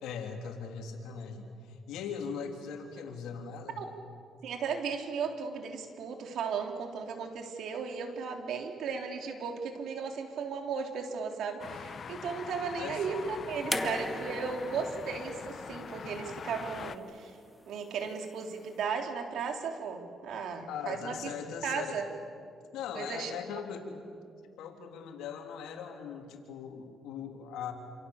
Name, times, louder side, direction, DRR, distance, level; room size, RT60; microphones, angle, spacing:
voice 1, 0.0-3.8 12.8-13.1 20.7-22.0 22.7-24.0 24.6-27.7, left 6 dB, 90° left, 3 dB, 3.4 m, -40 dB
voice 2, 4.4-17.3 17.7-21.2 21.6-22.1 22.9-23.3, right 5 dB, 75° right, 4 dB, 3.5 m, -36 dB
sound 1, 11.6-17.0, left 6 dB, 50° left, 1.1 m, -43 dB
sound 2, 13.7-16.9 18.1-18.2, left 1 dB, 5° left, 2.1 m, -38 dB
28.0 x 27.5 x 7.2 m, 2.4 s
cardioid pair, 90°, 0 cm